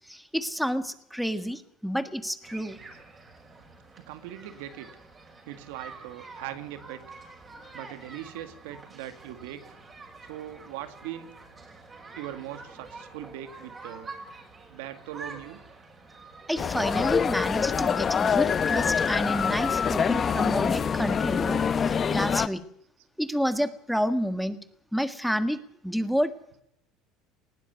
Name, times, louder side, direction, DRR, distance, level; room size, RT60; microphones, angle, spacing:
voice 1, 0.1-2.8 16.5-22.6 23.2-24.6 24.9-26.3, equal, ahead, 10 dB, 1.6 m, -29 dB
sound 1, 2.4-21.2, right 3 dB, 20° right, 5.4 m, -47 dB
voice 2, 4.0-4.9 5.5-7.0 7.7-9.8 10.2-11.3 12.2-14.1 14.7-15.6, right 12 dB, 90° right, 10 dB, 2.1 m, -40 dB
sound 2, 16.6-22.5, left 7 dB, 30° left, 0.9 m, -25 dB
19.5 x 16.0 x 9.5 m, 0.74 s
supercardioid pair, 120°, 0 cm